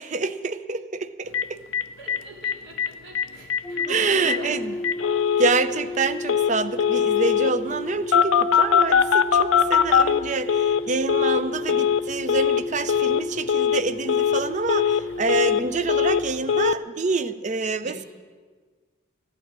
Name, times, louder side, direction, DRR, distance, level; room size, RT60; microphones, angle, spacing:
voice 1, 0.0-1.6 3.9-4.7 5.4-18.1, right 3 dB, 35° right, 13 dB, 0.5 m, -27 dB
Telephone, 1.3-1.4 1.7-1.8 2.1-2.2 2.4-2.9 3.2-3.3 3.5-3.9 4.3-4.4 4.8-5.5 6.3-6.5 6.8-7.5 8.1-10.8 11.1-11.4 11.7-12.0 12.3-12.6 12.9-13.2 13.5-13.8 14.1-14.4 14.7-15.6 15.9-16.2 16.5-16.7, left 8 dB, 80° left, 0.5 m, -21 dB
voice 2, 2.0-4.6 17.8-17.9, right 1 dB, 65° right, -1 dB, 3.0 m, -40 dB
sound 1, 3.6-16.4, left 1 dB, 5° left, 0.8 m, -33 dB
15.0 x 9.0 x 8.7 m, 1.5 s
head